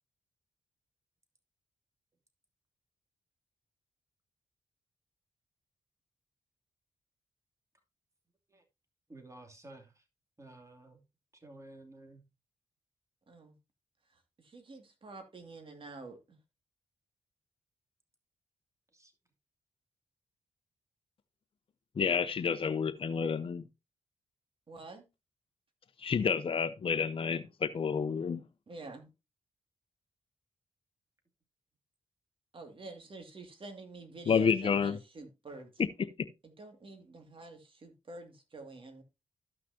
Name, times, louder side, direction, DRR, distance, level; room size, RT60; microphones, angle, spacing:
voice 1, 9.1-10.0 10.4-11.0 11.3-12.2 18.9-19.1, right 2 dB, 25° right, 2.7 m, -53 dB
voice 2, 13.3-13.6 14.1-16.4 24.7-25.0 28.7-29.1 32.5-35.7 36.4-39.0, right 2 dB, 45° right, 2.3 m, -48 dB
voice 3, 22.0-23.6 26.0-28.4 34.3-35.0 36.2-36.3, left 6 dB, 50° left, 0.7 m, -29 dB
13.0 x 5.9 x 2.8 m
cardioid pair, 55°, 12 cm